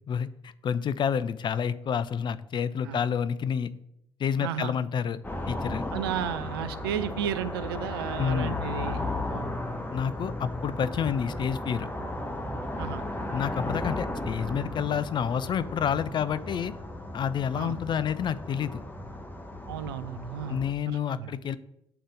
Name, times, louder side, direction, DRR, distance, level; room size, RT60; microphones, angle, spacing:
voice 1, 0.1-3.7 4.2-5.2 5.5-5.8 8.2-8.6 9.9-11.9 13.3-16.7 17.1-18.8 20.5-21.6, left 7 dB, 40° left, 15 dB, 0.4 m, -29 dB
voice 2, 4.4-4.7 5.9-9.0 9.3-9.5 12.8-13.0 17.6-17.8 19.7-21.3, right 9 dB, 75° right, 13 dB, 0.4 m, -33 dB
sound 1, 5.2-20.7, left 1 dB, 15° left, 1.0 m, -35 dB
7.9 x 3.9 x 4.9 m, 0.80 s
figure-of-eight pair, 50°, 12 cm